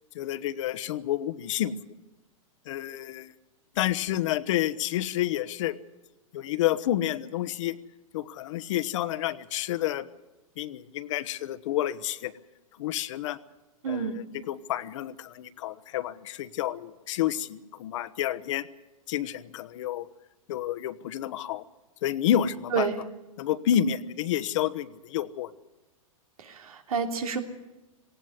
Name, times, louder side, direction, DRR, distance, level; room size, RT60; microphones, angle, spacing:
voice 1, 0.1-1.8 2.7-3.3 3.7-5.8 6.3-7.8 8.1-10.1 10.6-12.3 12.8-13.4 13.9-18.7 19.1-20.1 20.5-21.6 22.0-22.9 23.4-25.5, left 11 dB, 60° left, 14 dB, 1.2 m, -29 dB
voice 2, 13.8-14.2 22.7-22.9 26.4-27.4, right 6 dB, 85° right, 5 dB, 3.1 m, -29 dB
18.5 x 17.5 x 9.7 m, 1.0 s
hypercardioid pair, 135°, 18 cm